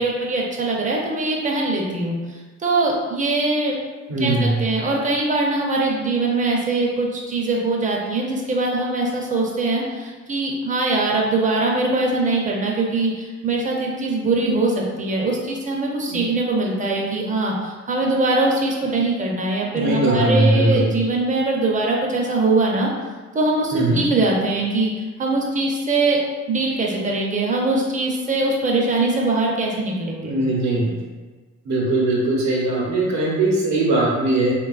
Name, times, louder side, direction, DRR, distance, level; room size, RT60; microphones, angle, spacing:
voice 1, 0.0-3.7 4.2-22.9 23.3-24.9 25.2-26.2 26.5-30.3, right 2 dB, 25° right, -2 dB, 0.6 m, -22 dB
voice 2, 4.1-4.6 16.1-16.2 19.7-20.9 23.7-24.0 30.2-31.0 31.6-34.5, right 2 dB, 65° right, -4 dB, 0.8 m, -20 dB
3.2 x 2.3 x 2.4 m, 1.3 s
cardioid pair, 90°, 30 cm